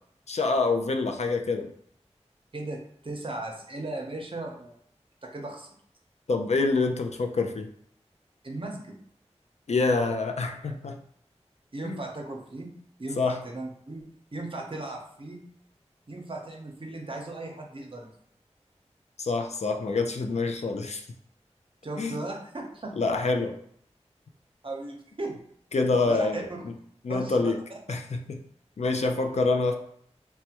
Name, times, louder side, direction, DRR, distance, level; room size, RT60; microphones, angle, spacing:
voice 1, 0.3-1.7 6.3-7.7 9.7-11.0 11.8-12.0 13.2-13.4 19.2-21.0 22.0-22.2 23.0-23.6 25.7-26.7 27.0-27.6 27.9-28.4 28.8-29.8, left 3 dB, 70° left, 3 dB, 0.4 m, -26 dB
voice 2, 2.5-4.8 5.2-5.7 8.4-9.0 11.7-12.7 13.0-15.4 16.1-18.1 21.8-22.9 24.6-25.4 26.0-26.6 27.1-27.5, right 2 dB, 50° right, 1 dB, 0.6 m, -37 dB
3.3 x 2.2 x 2.8 m, 0.65 s
wide cardioid pair, 60°, 12 cm